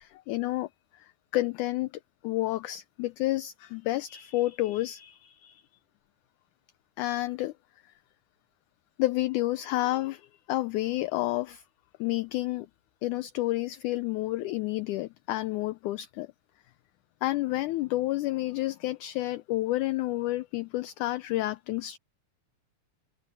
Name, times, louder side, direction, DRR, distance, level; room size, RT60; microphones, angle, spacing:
voice 1, 0.0-1.9 2.2-5.6 7.0-7.5 9.0-11.6 12.0-12.7 13.0-16.3 17.2-22.0, left 17 dB, 80° left, 1.9 m, -30 dB
omnidirectional pair, 4.0 m